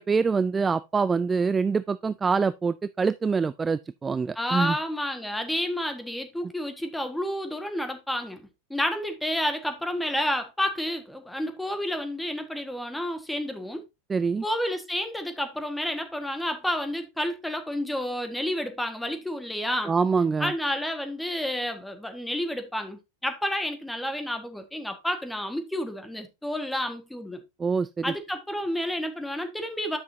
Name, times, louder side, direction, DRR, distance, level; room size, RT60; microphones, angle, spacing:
voice 1, 0.0-4.8 14.1-14.4 19.9-20.5 27.6-28.1, right 5 dB, 15° right, 0.3 m, -25 dB
voice 2, 4.3-13.8 14.4-19.9 20.4-27.4 28.0-30.0, left 1 dB, 5° left, 1.5 m, -30 dB
10.0 x 6.0 x 2.7 m
figure-of-eight pair, 90°, 0 cm